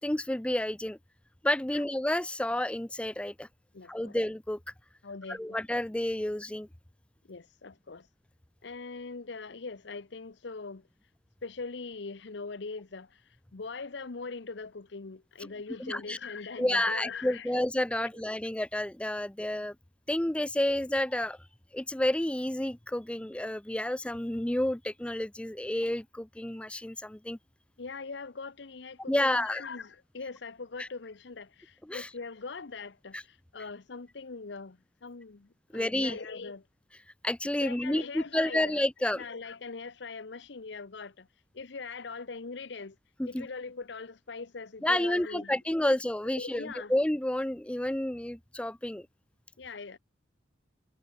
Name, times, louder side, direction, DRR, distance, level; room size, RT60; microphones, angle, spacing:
voice 1, 0.0-1.0 1.4-3.5 3.9-4.6 5.3-6.7 15.8-16.2 16.6-19.7 20.1-21.4 21.7-27.4 29.1-29.6 30.8-30.9 31.9-32.1 33.1-33.2 35.7-36.2 37.2-39.2 43.2-43.5 44.8-49.1, left 1 dB, 5° left, 0.4 m, -30 dB
voice 2, 3.7-4.1 5.0-5.6 7.3-8.1 8.6-10.9 11.4-17.6 18.0-18.1 27.8-36.7 37.6-38.8 39.1-41.3 41.5-43.0 43.3-45.5 45.9-46.0 46.3-46.9 49.6-50.0, left 4 dB, 65° left, 0.8 m, -41 dB
head